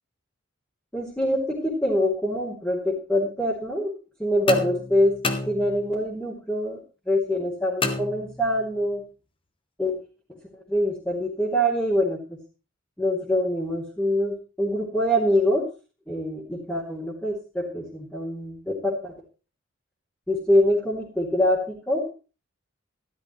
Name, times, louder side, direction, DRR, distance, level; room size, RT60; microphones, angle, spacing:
voice 1, 0.9-3.9 4.2-5.2 5.4-6.8 7.1-9.0 9.8-9.9 10.7-12.4 13.0-15.6 16.1-19.1 20.3-22.0, equal, 10° left, -8 dB, 3.1 m, -24 dB
sound 1, 4.5-6.1 7.8-8.8, left 3 dB, 25° left, 1.0 m, -30 dB
13.0 x 12.5 x 3.2 m, 0.34 s
head